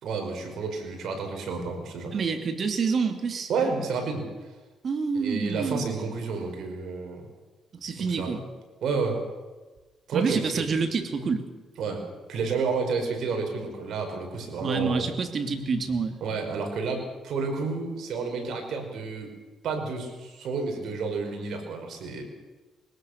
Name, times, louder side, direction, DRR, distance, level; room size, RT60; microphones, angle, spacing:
voice 1, 0.0-2.1 3.5-4.3 5.1-7.3 8.0-8.3 8.8-9.2 10.1-10.6 11.8-12.0 12.3-15.0 16.2-19.3 19.6-22.2, right 4 dB, 70° right, 3 dB, 5.4 m, -30 dB
voice 2, 2.1-3.5 4.8-6.0 7.8-8.4 10.1-11.4 14.6-16.2, right 5 dB, 50° right, 7 dB, 2.8 m, -27 dB
21.0 x 18.5 x 6.8 m, 1.2 s
cardioid pair, 90°, 0 cm